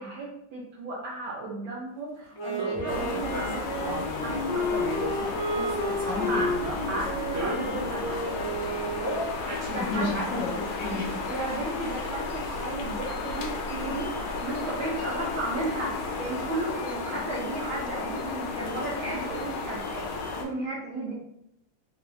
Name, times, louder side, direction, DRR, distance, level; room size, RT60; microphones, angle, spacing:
voice 1, 0.0-4.9 6.3-6.5 6.9-8.2 9.3-10.1 11.2-21.2, right 2 dB, 75° right, -6 dB, 1.5 m, -34 dB
Wind instrument woodwind instrument, 2.3-9.4, equal, 65° left, 1.4 m, -32 dB
sound 1, 2.6-8.5 9.0-12.6, equal, 50° right, 0.7 m, -36 dB
sound 2, 2.9-20.4, left 3 dB, 90° left, 1.5 m, -33 dB
voice 2, 4.9-5.3 6.0-6.5 9.6-11.2, left 2 dB, 45° left, -10 dB, 1.2 m, -32 dB
4.0 x 2.4 x 3.1 m, 0.77 s
omnidirectional pair, 2.2 m